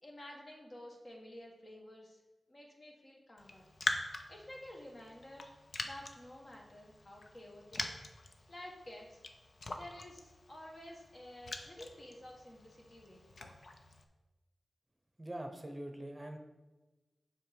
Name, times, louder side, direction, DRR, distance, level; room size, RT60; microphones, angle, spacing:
voice 1, 0.0-2.2 2.5-3.7 4.3-5.5 5.8-7.8 8.5-9.2 9.7-13.4, left 1 dB, 45° left, -1 dB, 1.7 m, -51 dB
Raindrop, 3.4-14.0, left 2 dB, 65° left, 0.7 m, -44 dB
voice 2, 15.2-16.4, right 1 dB, 20° right, 5 dB, 0.8 m, -43 dB
7.6 x 5.5 x 5.3 m, 1.2 s
wide cardioid pair, 80°, 0 cm